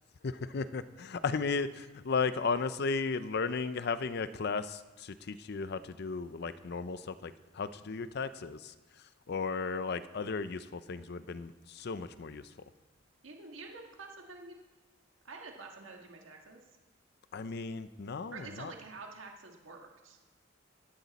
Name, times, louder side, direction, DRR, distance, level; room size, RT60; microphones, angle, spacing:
voice 1, 0.2-8.7 9.3-12.5 17.3-18.7, left 4 dB, 55° left, 13 dB, 0.5 m, -35 dB
voice 2, 13.2-14.5 15.2-16.6 18.3-20.2, right 3 dB, 75° right, 1 dB, 1.6 m, -48 dB
16.5 x 13.5 x 4.1 m, 1.2 s
head